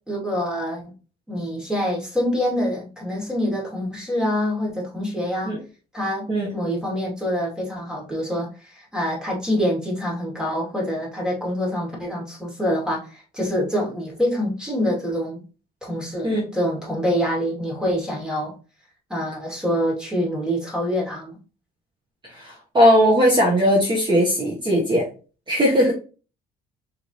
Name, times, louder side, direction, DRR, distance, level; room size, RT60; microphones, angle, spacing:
voice 1, 0.1-0.8 1.3-5.6 5.9-15.4 15.8-18.5 19.1-21.4, equal, 5° right, 2.2 m, -26 dB
voice 2, 22.3-25.0 25.5-25.9, equal, 30° right, 1.4 m, -18 dB
4.7 x 3.3 x 2.8 m
cardioid pair, 110°, 17 cm